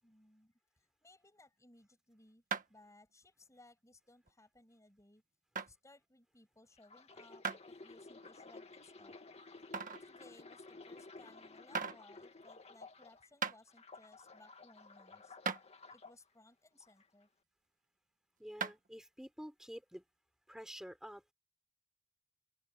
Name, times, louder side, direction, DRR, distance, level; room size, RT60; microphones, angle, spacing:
voice 1, 0.0-2.4 2.7-5.2 5.5-9.2 10.0-15.4 15.9-17.3, left 2 dB, 15° left, 7.5 m, -63 dB
sound 1, 2.5-2.9 3.4-3.5 4.3-4.4 5.6-5.7 7.4-7.6 8.2-8.3 9.7-10.1 11.2-11.3 11.7-12.0 13.0-13.1 13.4-13.6 14.9-15.0 15.5-15.6 18.6-18.9, right 5 dB, 40° right, 1.6 m, -38 dB
sound 2, 6.8-13.3 13.7-16.1 16.8-17.0, left 3 dB, 30° left, 2.0 m, -54 dB
voice 2, 18.4-20.0 20.5-21.2, equal, 5° right, 4.8 m, -49 dB
head